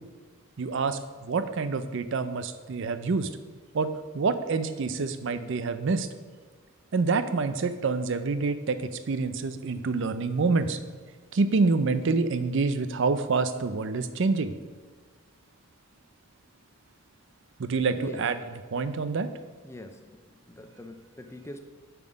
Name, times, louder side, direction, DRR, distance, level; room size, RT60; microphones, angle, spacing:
voice 1, 0.6-3.3 3.7-6.1 6.9-10.8 11.3-14.5 17.6-18.4 18.7-19.3, right 4 dB, 60° right, 11 dB, 0.5 m, -27 dB
voice 2, 17.9-18.2 19.6-20.2 20.5-21.6, left 1 dB, 10° left, 6 dB, 0.4 m, -43 dB
7.2 x 5.9 x 5.1 m, 1.4 s
head